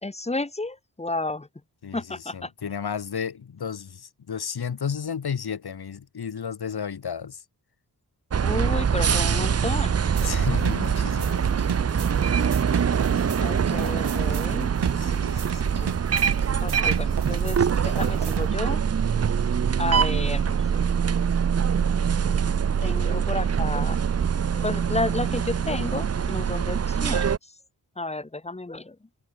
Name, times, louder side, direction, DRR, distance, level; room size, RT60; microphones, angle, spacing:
voice 1, 0.0-1.5 1.9-2.5 8.4-10.3 13.4-14.7 15.8-15.9 16.6-18.8 19.8-21.0 22.0-22.1 22.8-24.1 24.5-27.5 28.0-29.0, left 2 dB, 15° left, 1.2 m, -32 dB
voice 2, 1.8-7.4 10.2-11.5 15.0-15.8, left 7 dB, 70° left, 1.9 m, -33 dB
sound 1, 8.3-27.4, right 7 dB, 40° right, 0.6 m, -24 dB
sound 2, 10.1-18.5, right 7 dB, 85° right, 1.6 m, -31 dB
Bowed string instrument, 15.0-21.1, right 5 dB, 60° right, 8.0 m, -52 dB
wide cardioid pair, 130°, 39 cm